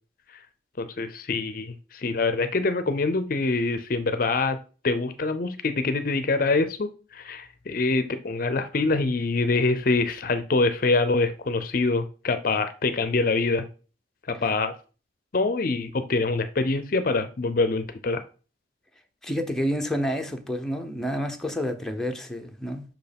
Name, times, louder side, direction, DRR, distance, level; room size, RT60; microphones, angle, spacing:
voice 1, 0.8-4.6 4.8-13.7 14.3-14.7 15.3-18.2, left 3 dB, 50° left, 0.5 m, -25 dB
voice 2, 19.2-22.8, equal, 5° left, 0.8 m, -29 dB
5.9 x 4.6 x 5.2 m
head